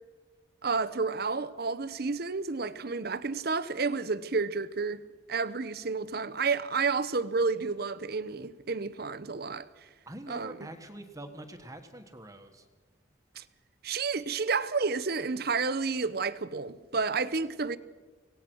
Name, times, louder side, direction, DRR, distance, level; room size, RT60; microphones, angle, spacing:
voice 1, 0.6-5.0 5.3-9.7 10.3-10.7 13.4-13.5 13.8-17.8, right 4 dB, 55° right, 0.9 m, -30 dB
voice 2, 10.1-12.6, right 1 dB, 20° right, 1.5 m, -44 dB
25.5 x 18.0 x 6.3 m
head